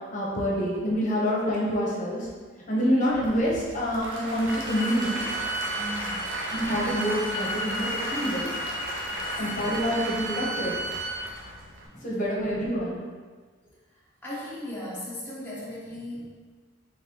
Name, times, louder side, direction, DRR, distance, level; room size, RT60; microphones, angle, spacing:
voice 1, 0.1-2.3 2.7-5.3 6.5-8.5 9.4-10.8 11.9-13.0, equal, 40° left, -4 dB, 0.8 m, -27 dB
Applause / Crowd, 3.1-11.9, right 1 dB, 75° right, 0.6 m, -35 dB
Bowed string instrument, 4.5-11.2, right 1 dB, 75° left, 0.6 m, -35 dB
voice 2, 5.7-6.3 9.0-9.3 11.9-12.3 13.9-16.3, equal, 10° left, -8 dB, 0.7 m, -38 dB
3.8 x 3.6 x 2.9 m, 1.5 s
head